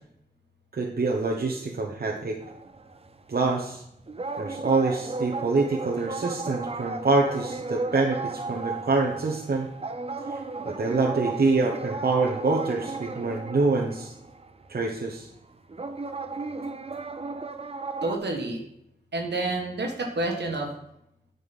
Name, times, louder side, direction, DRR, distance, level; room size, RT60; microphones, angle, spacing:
voice 1, 0.7-2.4 3.3-3.8 4.4-9.7 10.3-14.1 14.7-15.3, right 3 dB, 65° right, -1 dB, 0.9 m, -26 dB
sound 1, 2.4-3.4 3.9-14.8 15.7-18.2, right 3 dB, 35° right, 0.6 m, -35 dB
voice 2, 18.0-18.6 19.1-20.7, right 2 dB, 80° right, 1 dB, 1.5 m, -29 dB
9.2 x 5.3 x 4.1 m, 0.78 s
cardioid pair, 45°, 17 cm